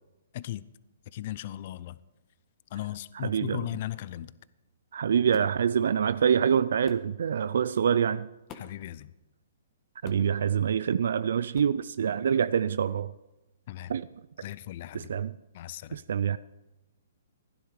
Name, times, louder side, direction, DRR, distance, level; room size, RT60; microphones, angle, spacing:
voice 1, 0.3-0.6 1.1-2.0 2.7-4.3 8.6-9.1 13.7-13.9 14.4-15.1 15.5-16.0, left 13 dB, 45° left, 0.5 m, -37 dB
voice 2, 3.1-3.7 4.9-8.3 10.0-13.1 13.9-14.1 14.9-15.3 15.9-16.4, right 7 dB, 70° right, 0.4 m, -26 dB
sound 1, 5.3-5.6 6.9-7.1 8.5-8.9 10.1-10.4 11.5-11.8, left 6 dB, 25° left, 1.4 m, -47 dB
15.5 x 10.0 x 4.8 m
hypercardioid pair, 150°, 0 cm